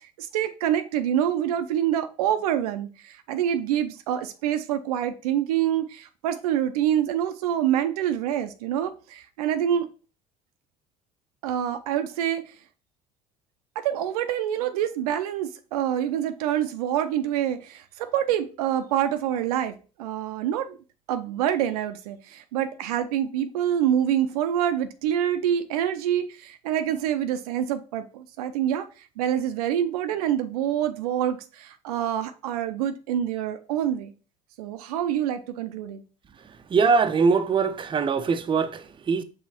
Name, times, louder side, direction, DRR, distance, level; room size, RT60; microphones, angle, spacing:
voice 1, 0.2-9.9 11.4-12.5 13.8-20.8 21.1-28.9 29.2-34.1 34.6-36.0, right 10 dB, 80° right, 0.5 m, -26 dB
voice 2, 36.7-39.2, right 5 dB, 25° right, 0.5 m, -22 dB
5.4 x 3.2 x 2.9 m
hypercardioid pair, 65°, 19 cm